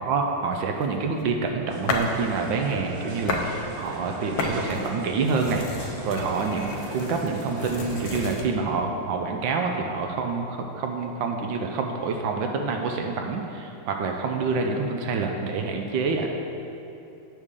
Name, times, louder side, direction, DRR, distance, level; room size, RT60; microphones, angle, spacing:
voice 1, 0.0-16.3, right 4 dB, 75° right, 3 dB, 1.2 m, -27 dB
sound 1, 0.8-2.2 2.6-3.5 3.8-8.5, left 4 dB, 75° left, 1.5 m, -33 dB
sound 2, 1.7-8.3, right 3 dB, 90° right, 1.9 m, -38 dB
8.2 x 3.6 x 6.5 m, 2.7 s
omnidirectional pair, 2.4 m